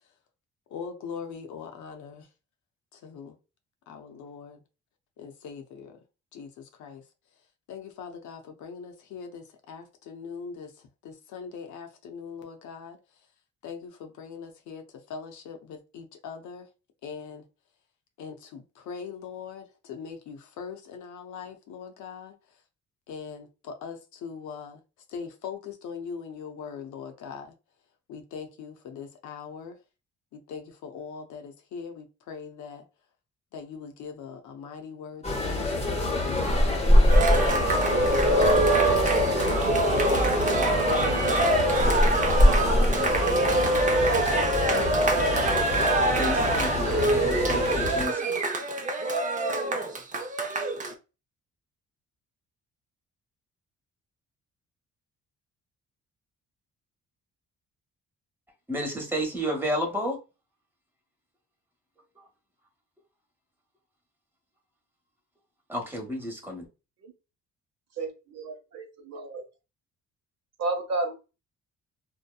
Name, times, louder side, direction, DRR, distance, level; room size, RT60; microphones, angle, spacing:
voice 1, 0.7-2.3 2.9-3.4 3.9-4.6 5.2-6.0 6.3-7.1 7.7-13.2 13.6-16.7 17.0-17.5 18.2-22.6 23.1-24.8 25.1-27.5 28.1-29.8 30.3-32.8 33.5-38.6 39.2-41.2, left 6 dB, 75° left, 0.7 m, -41 dB
sound 1, 35.2-48.1, left 1 dB, 20° left, 0.8 m, -25 dB
Cheering, 37.1-50.9, right 2 dB, 25° right, 0.5 m, -24 dB
voice 2, 42.4-43.2 46.2-48.2 58.7-60.2 65.7-66.6, equal, 5° right, 1.0 m, -32 dB
voice 3, 68.0-69.4 70.6-71.1, right 2 dB, 60° right, 0.9 m, -32 dB
2.7 x 2.2 x 2.3 m
cardioid pair, 90°, 30 cm